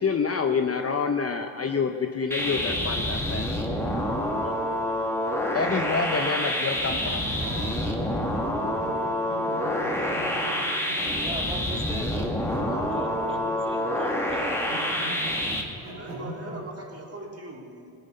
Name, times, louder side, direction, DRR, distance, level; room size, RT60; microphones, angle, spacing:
voice 1, 0.0-3.5 4.4-4.6 5.5-7.2, left 5 dB, 30° left, 5 dB, 0.8 m, -27 dB
sound 1, 2.3-15.6, left 1 dB, 5° left, 2.1 m, -27 dB
sound 2, 5.5-8.4 8.6-11.3 12.2-13.7 14.2-16.7, right 1 dB, 80° right, 3.8 m, -40 dB
voice 2, 11.1-12.3 12.9-13.4 13.6-15.0, right 1 dB, 10° right, 0 dB, 2.3 m, -38 dB
voice 3, 12.5-12.9 13.8-13.9 16.0-17.9, right 2 dB, 30° right, -1 dB, 3.1 m, -41 dB
18.0 x 9.1 x 5.5 m, 2.7 s
supercardioid pair, 65°, 48 cm